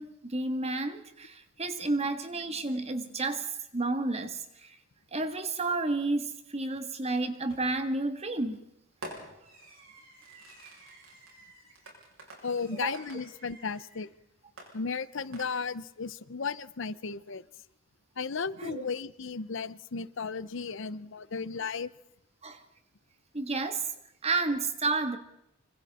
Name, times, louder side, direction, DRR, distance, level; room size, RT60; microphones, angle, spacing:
voice 1, 0.0-4.8 5.1-8.6 12.8-13.0 18.6-18.8 22.4-22.6 23.3-23.9 24.2-25.2, right 3 dB, 30° right, 8 dB, 1.8 m, -31 dB
Fireworks, 7.5-7.9 9.0-14.1 14.6-15.9, right 1 dB, 75° right, 7.1 m, -49 dB
voice 2, 12.4-14.1 14.7-17.4 18.2-21.9, left 5 dB, 65° left, 17 dB, 0.7 m, -35 dB
25.5 x 25.5 x 4.3 m, 0.79 s
head